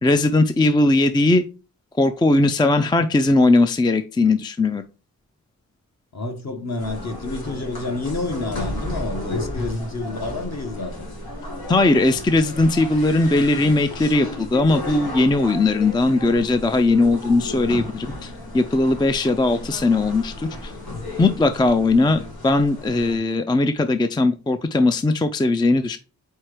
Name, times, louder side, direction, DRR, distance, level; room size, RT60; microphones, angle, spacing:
voice 1, 0.0-1.4 2.0-4.8 11.7-20.7 21.2-26.0, left 2 dB, 15° left, 0.4 m, -19 dB
voice 2, 6.1-11.1, left 3 dB, 45° left, 1.3 m, -29 dB
sound 1, 6.8-23.2, left 1 dB, 90° left, 2.1 m, -33 dB
4.5 x 4.4 x 4.8 m
wide cardioid pair, 120°, 36 cm